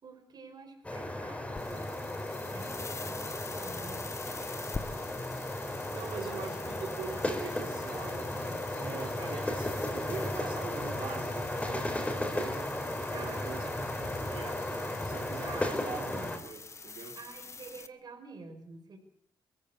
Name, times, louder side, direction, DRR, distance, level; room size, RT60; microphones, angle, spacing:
voice 1, 0.0-4.0 13.0-13.7 15.4-16.4 17.2-19.0, right 4 dB, 50° right, 5 dB, 5.4 m, -49 dB
sound 1, 0.8-16.4, left 1 dB, 15° left, 4.5 m, -35 dB
sound 2, 1.5-17.9, left 4 dB, 30° left, 1.2 m, -46 dB
voice 2, 5.9-17.2, right 5 dB, 70° right, 2 dB, 4.4 m, -43 dB
22.0 x 15.0 x 8.5 m, 0.67 s
cardioid pair, 90°, 9 cm